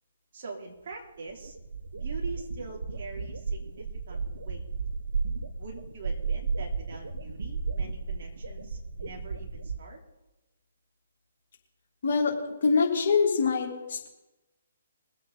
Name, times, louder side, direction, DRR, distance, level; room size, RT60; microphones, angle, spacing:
voice 1, 0.3-1.5 1.9-4.6 5.6-10.0, right 3 dB, 50° right, -1 dB, 3.4 m, -43 dB
sound 1, 0.9-1.0 1.3-9.8, right 4 dB, 70° right, 1.1 m, -34 dB
voice 2, 12.0-14.1, left 5 dB, 50° left, -1 dB, 3.2 m, -25 dB
23.0 x 8.2 x 4.1 m, 1.0 s
figure-of-eight pair, 130°, 0 cm